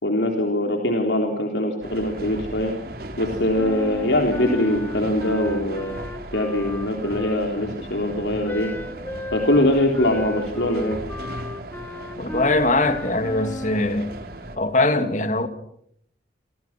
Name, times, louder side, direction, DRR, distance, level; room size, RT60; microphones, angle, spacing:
voice 1, 0.0-2.7 3.2-5.9 6.3-8.7 9.3-11.0, left 1 dB, 75° left, 3.8 m, -22 dB
sound 1, 1.8-14.6, right 1 dB, 55° right, 3.9 m, -37 dB
Wind instrument woodwind instrument, 3.6-7.7 8.4-13.9, left 1 dB, 10° left, 2.0 m, -35 dB
voice 2, 12.2-14.1 14.6-15.5, left 2 dB, 45° left, 2.7 m, -21 dB
29.5 x 25.5 x 6.2 m
head